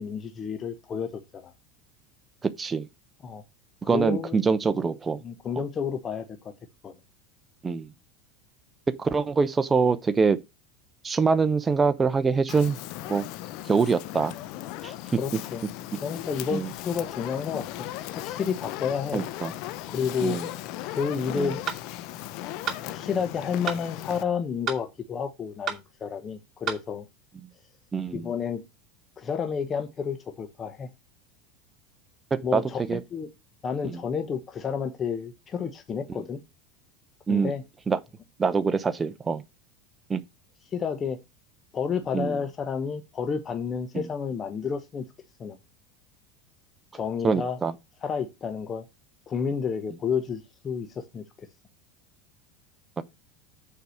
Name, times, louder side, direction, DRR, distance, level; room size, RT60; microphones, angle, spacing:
voice 1, 0.0-1.5 3.2-3.4 3.8-4.4 5.2-6.5 6.8-7.0 15.2-15.6 16.0-17.9 18.1-19.2 19.9-20.4 20.9-21.6 22.8-27.0 28.1-28.6 29.2-30.9 32.4-33.3 33.6-36.4 37.3-37.6 40.7-41.2 41.7-45.1 45.4-45.6 46.9-47.6 48.0-48.9 49.3-51.2, left 6 dB, 30° left, 1.0 m, -30 dB
voice 2, 2.4-2.9 3.9-5.2 7.6-7.9 9.0-10.4 11.0-12.8 13.1-13.2 13.7-14.3 14.8-14.9 16.5-16.7 19.1-19.5 20.2-20.5 21.3-21.5 27.9-28.3 32.3-32.6 32.9-33.0 33.9-34.0 37.3-37.5 37.9-38.0 38.4-39.4 40.1-40.2 42.1-42.4 43.9-44.1 47.2-47.7 53.0-53.1, right 5 dB, 20° right, 0.7 m, -24 dB
Fire, 12.5-24.2, left 14 dB, 60° left, 0.8 m, -37 dB
sound 1, 21.7-21.8 22.7-22.8 23.7-23.8 24.7-24.8 25.7-25.8 26.7-26.8, right 9 dB, 35° right, 2.5 m, -30 dB
6.8 x 4.8 x 6.4 m
hypercardioid pair, 105°, 0 cm